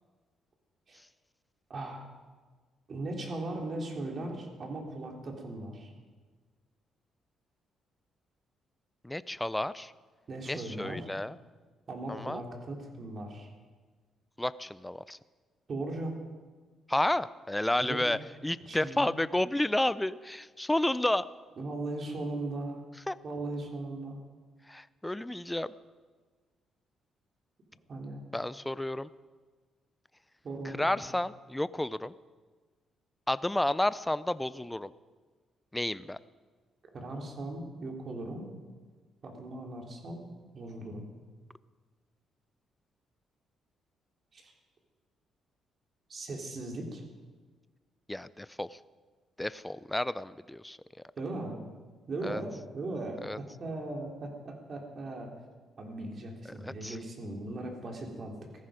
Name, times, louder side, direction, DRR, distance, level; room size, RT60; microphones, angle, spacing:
voice 1, 1.7-2.0 2.9-5.9 10.3-11.1 11.9-13.5 15.7-16.1 17.8-18.0 18.7-19.1 21.6-22.8 23.2-24.2 27.9-28.2 30.4-31.0 36.9-38.5 39.2-40.2 40.5-41.1 44.3-44.5 46.1-47.0 51.2-51.6 52.1-55.3 55.8-58.3, right 2 dB, 45° right, 1 dB, 3.6 m, -38 dB
voice 2, 9.0-9.9 10.5-11.4 12.1-12.4 14.4-15.2 16.9-21.3 23.1-23.2 24.7-25.7 28.3-29.1 30.6-32.1 33.3-34.9 35.7-36.2 48.1-48.8 49.4-50.8 52.2-52.4 53.2-53.4 56.6-57.0, left 1 dB, 10° left, 17 dB, 0.5 m, -31 dB
18.0 x 14.5 x 5.1 m, 1.4 s
cardioid pair, 90°, 0 cm